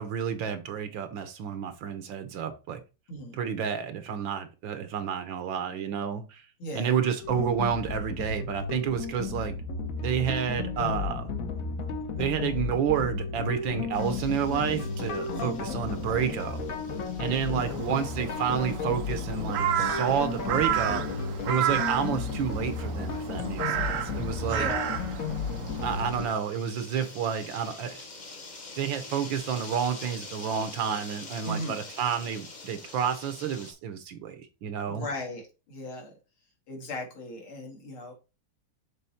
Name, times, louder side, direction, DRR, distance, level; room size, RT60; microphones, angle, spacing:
voice 1, 0.0-2.8 3.3-6.4 6.7-9.6 10.0-11.3 12.2-16.6 17.2-21.0 21.4-24.7 25.8-28.0 28.8-35.1, right 8 dB, 70° right, 1.5 m, -30 dB
voice 2, 3.1-3.4 6.6-7.0 15.3-15.7 17.5-17.8 24.4-25.0 31.4-31.7 34.9-35.4 35.7-36.1 36.7-38.1, left 1 dB, 75° left, 2.9 m, -37 dB
sound 1, 7.2-26.3, left 4 dB, 55° left, 1.1 m, -33 dB
sound 2, 13.9-33.7, left 3 dB, 35° left, 0.7 m, -47 dB
Crow, 17.6-26.1, right 10 dB, 85° right, 1.7 m, -32 dB
6.9 x 4.0 x 4.2 m
omnidirectional pair, 2.4 m